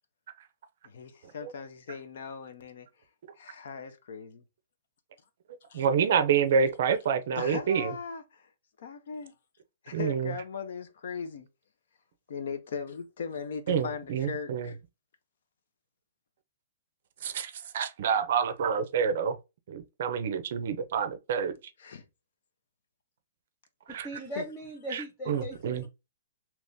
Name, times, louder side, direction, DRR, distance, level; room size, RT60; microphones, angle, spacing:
voice 1, 0.8-2.9 3.4-4.4 5.7-5.9 7.3-8.5 8.8-9.3 9.8-11.5 12.3-14.8 21.8-22.0 24.4-24.5, left 5 dB, 55° left, 0.7 m, -39 dB
voice 2, 5.7-7.9 9.9-10.3 13.7-14.7 17.2-19.4 19.7-21.5 23.9-24.1 24.9-25.0 25.3-25.9, right 7 dB, 50° right, 0.5 m, -27 dB
voice 3, 23.9-25.9, right 1 dB, 10° left, 0.7 m, -39 dB
3.5 x 2.9 x 2.6 m
hypercardioid pair, 175°, 0 cm